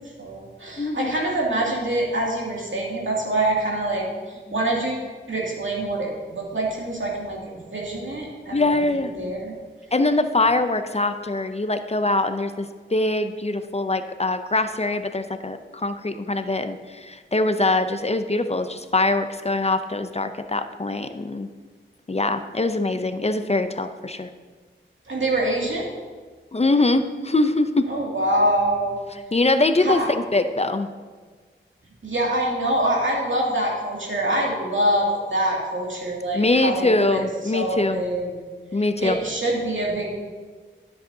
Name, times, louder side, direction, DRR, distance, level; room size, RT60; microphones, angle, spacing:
voice 1, 0.0-9.5 25.1-25.9 27.9-29.0 29.8-30.1 32.0-37.2 37.5-38.3 39.0-40.1, right 1 dB, 70° right, -3 dB, 2.4 m, -25 dB
voice 2, 0.8-1.1 4.5-4.6 8.5-9.1 9.9-21.5 22.1-24.3 26.5-27.9 29.1-30.9 36.3-38.0 38.7-39.2, left 2 dB, 30° left, 9 dB, 0.5 m, -23 dB
12.5 x 7.8 x 2.7 m, 1.5 s
wide cardioid pair, 50°, 20 cm